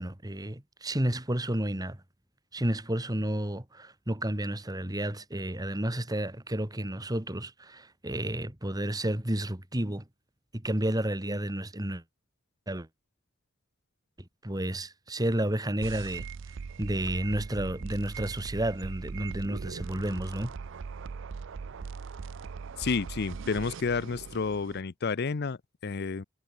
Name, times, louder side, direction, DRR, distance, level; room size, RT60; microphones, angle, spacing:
voice 1, 0.0-2.0 2.5-10.0 10.5-12.0 12.7-12.9 14.4-16.3 16.8-20.5, right 1 dB, 20° right, 1.9 m, -31 dB
sound 1, 15.8-24.8, right 5 dB, 65° right, 0.5 m, -40 dB
voice 2, 22.8-26.2, left 4 dB, 50° left, 0.6 m, -30 dB
head